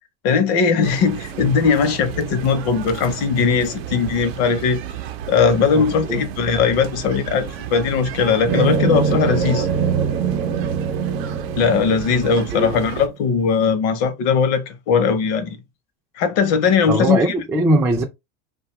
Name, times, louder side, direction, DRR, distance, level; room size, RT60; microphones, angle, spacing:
voice 1, 0.2-4.8 5.3-9.7 11.6-15.6 16.2-17.2, left 5 dB, 55° left, 0.7 m, -19 dB
sound 1, 0.8-13.1, right 10 dB, 85° right, 0.6 m, -33 dB
sound 2, 8.5-13.0, right 6 dB, 55° right, 0.8 m, -23 dB
voice 2, 16.9-18.0, right 1 dB, 10° right, 0.3 m, -20 dB
2.7 x 2.3 x 3.0 m
supercardioid pair, 135°, 29 cm